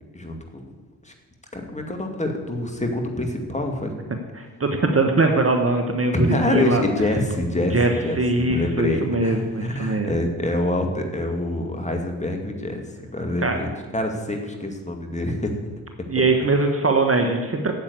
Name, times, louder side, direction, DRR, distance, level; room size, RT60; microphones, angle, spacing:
voice 1, 0.1-0.7 1.0-1.1 1.5-3.9 6.1-7.8 8.0-8.2 8.5-15.6, left 1 dB, 15° left, 3 dB, 2.2 m, -26 dB
voice 2, 4.3-6.8 7.7-7.9 8.2-10.1 13.4-13.6 16.1-17.7, right 2 dB, 30° right, 5 dB, 1.3 m, -21 dB
8.8 x 7.4 x 8.2 m, 1.3 s
hypercardioid pair, 40°, 47 cm